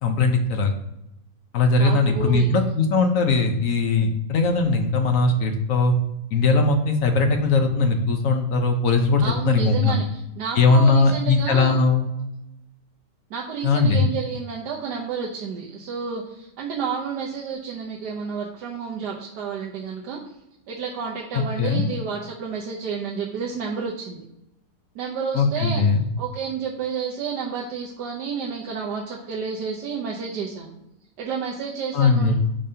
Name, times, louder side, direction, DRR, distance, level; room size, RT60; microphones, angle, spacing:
voice 1, 0.0-0.7 1.5-5.9 6.3-10.0 10.6-12.1 13.6-14.1 21.3-21.8 25.3-26.0 31.9-32.3, left 3 dB, 60° left, 4 dB, 1.1 m, -20 dB
voice 2, 1.8-2.5 9.2-11.8 13.3-20.2 20.7-24.2 24.9-25.8 26.2-30.7 31.2-32.3, right 6 dB, 70° right, -3 dB, 1.4 m, -30 dB
8.7 x 5.2 x 2.8 m, 0.87 s
omnidirectional pair, 1.9 m